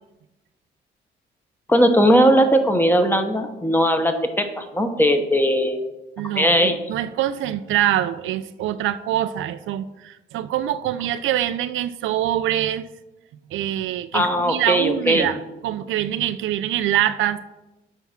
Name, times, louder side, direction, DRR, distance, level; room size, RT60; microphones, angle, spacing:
voice 1, 1.7-5.9 6.3-6.8 14.1-15.3, equal, 10° left, 6 dB, 0.9 m, -18 dB
voice 2, 6.2-12.9 13.5-15.4 15.6-17.5, right 12 dB, 80° right, 13 dB, 0.4 m, -24 dB
9.4 x 3.5 x 5.8 m, 1.0 s
cardioid pair, 90°, 20 cm